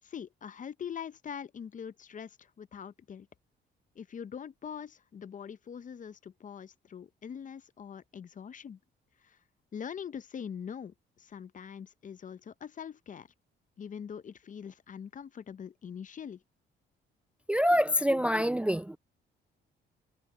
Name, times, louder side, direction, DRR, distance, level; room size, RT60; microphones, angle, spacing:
voice 1, 0.0-3.3 4.0-8.8 9.2-9.4 9.7-13.3 13.8-16.4, left 7 dB, 40° left, 0.6 m, -43 dB
voice 2, 17.5-19.0, equal, 5° right, 0.4 m, -26 dB
cardioid pair, 90°, 20 cm